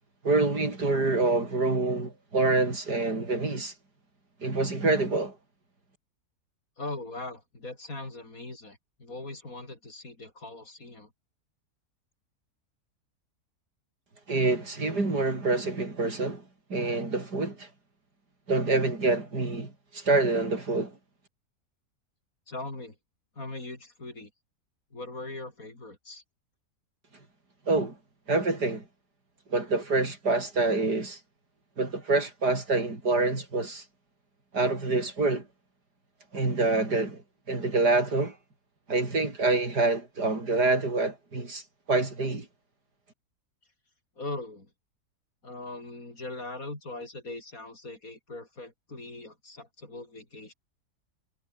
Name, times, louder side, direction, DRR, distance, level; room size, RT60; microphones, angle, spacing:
voice 1, 0.2-3.7 4.4-5.4 14.3-16.4 16.7-17.7 18.5-20.9 27.7-28.0 28.3-28.8 29.5-31.2 31.8-33.8 34.5-35.5 36.3-38.4 38.9-41.6 41.9-42.5, right 3 dB, 80° right, 5.9 m, -26 dB
voice 2, 6.8-11.1 22.5-23.0 23.4-24.3 24.9-26.2 44.2-44.7 45.4-50.5, left 2 dB, 55° left, 6.1 m, -40 dB
omnidirectional pair, 1.7 m